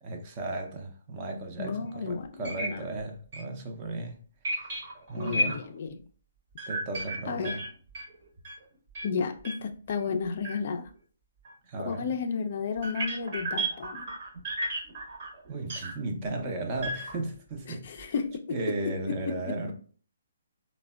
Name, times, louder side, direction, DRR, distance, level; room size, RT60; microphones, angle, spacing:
voice 1, 0.0-4.2 4.5-4.8 5.1-5.6 5.9-6.0 6.7-7.6 11.7-12.1 15.5-18.1 18.5-19.7, right 2 dB, 25° right, 0.5 m, -35 dB
voice 2, 1.6-2.8 5.2-6.0 7.3-7.6 9.0-10.9 11.8-14.1 17.7-18.6 19.1-19.2 19.6-19.7, left 5 dB, 45° left, 0.3 m, -33 dB
sound 1, 1.9-2.0 2.4-2.7 3.0-3.1 3.3-3.4 4.4-5.8 6.6-8.6 8.9-9.1 9.4-9.5 9.9-10.0 10.4-10.5 11.4-11.5 12.8-15.9 16.8-17.4 17.7-18.0, right 1 dB, 45° right, 0.8 m, -33 dB
3.3 x 2.1 x 2.2 m
hypercardioid pair, 160°, 0 cm